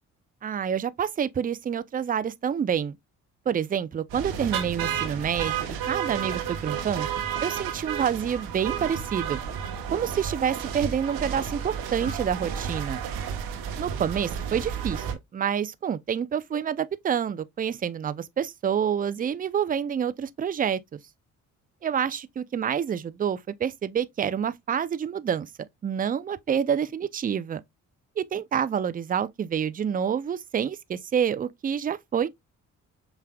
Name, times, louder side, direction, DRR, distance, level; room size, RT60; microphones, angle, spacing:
voice 1, 0.4-2.9 3.5-7.1 7.4-9.4 9.9-13.0 13.8-15.1 15.3-20.8 21.8-25.5 25.8-27.6 28.2-32.3, right 8 dB, 25° right, 0.4 m, -28 dB
sound 1, 4.1-15.1, right 8 dB, 80° right, 1.0 m, -32 dB
5.7 x 3.3 x 2.2 m
supercardioid pair, 60°, 37 cm